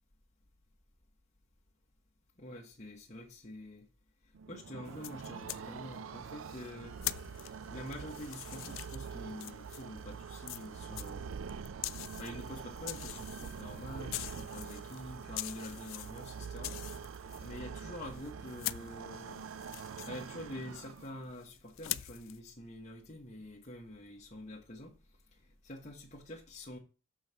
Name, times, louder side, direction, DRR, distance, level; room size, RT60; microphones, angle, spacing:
voice 1, 2.4-3.8 4.5-7.0 7.7-11.4 12.1-16.7 17.1-19.4 20.1-25.0 25.6-26.8, left 1 dB, 35° left, 1.3 m, -46 dB
sound 1, 4.3-21.3, right 6 dB, 75° right, 0.4 m, -45 dB
sound 2, 4.8-10.1 10.5-10.9 11.3-12.7, right 1 dB, 45° right, 3.7 m, -66 dB
sound 3, 4.9-5.6 6.4-10.0 10.4-17.6 18.1-21.1 21.4-22.4, left 16 dB, 70° left, 0.4 m, -43 dB
6.7 x 5.2 x 6.2 m
head